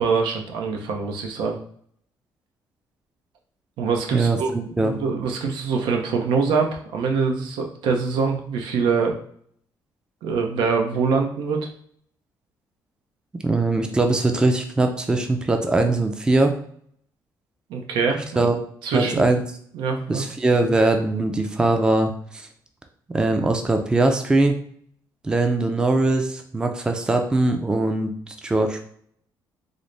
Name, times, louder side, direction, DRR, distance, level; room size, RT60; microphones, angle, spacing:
voice 1, 0.0-1.6 3.8-9.1 10.2-11.7 17.7-18.5 18.8-19.3 19.7-20.2, right 5 dB, 90° right, 2 dB, 0.6 m, -24 dB
voice 2, 4.1-5.0 13.4-16.5 18.4-18.6 18.9-19.4 20.1-22.5 23.1-24.6 25.2-28.8, right 2 dB, 10° right, 5 dB, 0.3 m, -21 dB
3.8 x 2.0 x 3.2 m, 0.62 s
cardioid pair, 140°, 8 cm